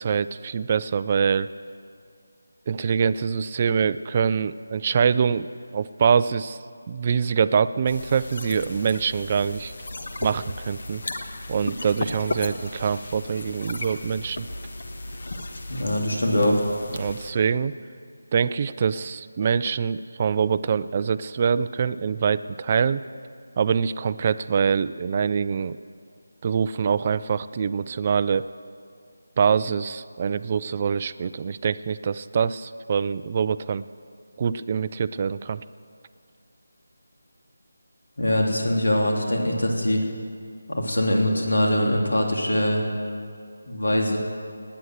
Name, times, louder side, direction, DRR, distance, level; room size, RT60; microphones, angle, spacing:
voice 1, 0.0-1.5 2.7-6.6 6.9-9.7 10.2-11.0 11.5-14.5 16.9-17.7 18.3-23.0 23.6-25.8 26.4-28.5 29.4-33.8 34.4-35.6, right 6 dB, 25° right, 14 dB, 0.3 m, -24 dB
sound 1, 7.9-17.3, left 2 dB, 55° left, 1.2 m, -35 dB
voice 2, 15.7-16.6 38.2-40.0 40.7-42.8 43.7-44.2, left 1 dB, 90° left, 0 dB, 3.3 m, -22 dB
18.5 x 9.6 x 7.9 m, 2.3 s
figure-of-eight pair, 175°, 0 cm